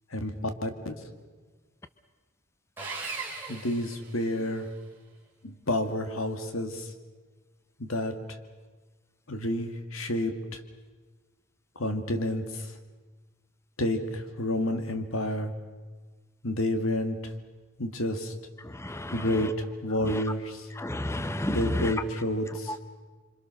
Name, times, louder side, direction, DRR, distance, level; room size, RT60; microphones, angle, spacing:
voice 1, 0.6-1.0 3.5-4.7 5.4-6.9 7.8-8.2 9.3-10.6 11.8-12.7 13.8-15.5 16.4-17.3 17.8-18.3 19.1-20.7 21.5-22.8, left 1 dB, 70° left, 2.2 m, -30 dB
Sawing, 2.8-4.7, right 4 dB, 10° right, 4.1 m, -38 dB
voice 2, 18.7-19.3 20.0-20.2 20.8-21.9, left 1 dB, 15° left, 0.7 m, -31 dB
26.5 x 25.5 x 6.6 m
head